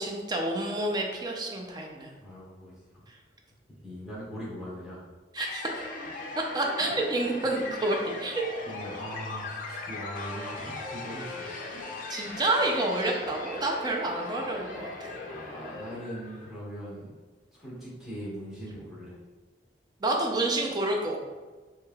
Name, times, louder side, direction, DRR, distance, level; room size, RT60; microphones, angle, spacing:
voice 1, 0.0-2.1 5.3-5.7 6.5-8.5 12.1-15.1 20.0-21.2, right 2 dB, 25° right, 1 dB, 0.4 m, -29 dB
voice 2, 2.2-2.8 3.7-5.0 8.6-11.5 15.2-17.1 17.5-19.2, equal, ahead, -9 dB, 1.1 m, -40 dB
sound 1, 5.4-16.5, left 3 dB, 50° left, 0.4 m, -39 dB
3.1 x 2.7 x 2.3 m, 1.3 s
head